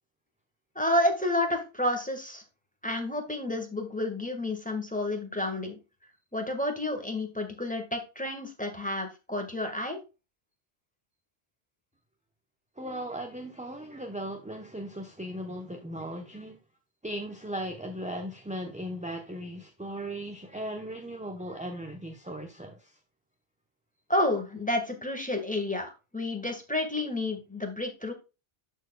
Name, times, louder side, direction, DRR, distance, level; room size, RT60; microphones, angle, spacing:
voice 1, 0.7-2.4 2.8-5.8 6.3-10.0 24.1-28.1, left 1 dB, 5° left, 1.5 m, -30 dB
voice 2, 12.8-16.6 17.0-23.0, right 1 dB, 10° right, 0.7 m, -37 dB
13.0 x 4.6 x 2.2 m
omnidirectional pair, 1.1 m